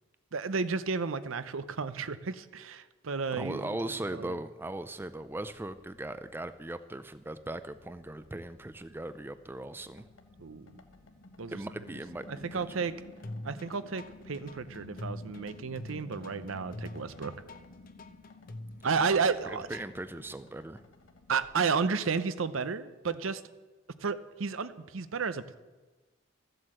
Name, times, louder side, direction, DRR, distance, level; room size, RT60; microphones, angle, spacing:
voice 1, 0.3-4.4 10.4-10.7 11.4-11.6 12.3-12.9 13.4-17.3 18.8-19.7 21.3-23.4 24.0-25.6, right 5 dB, 80° right, 13 dB, 0.7 m, -32 dB
voice 2, 3.4-10.0 11.5-12.8 19.5-20.8, right 1 dB, 10° right, 12 dB, 0.4 m, -39 dB
sound 1, 4.5-21.4, left 2 dB, 70° left, 1.3 m, -53 dB
sound 2, 13.2-20.0, left 1 dB, 45° left, 0.7 m, -44 dB
14.0 x 7.9 x 7.7 m, 1.2 s
head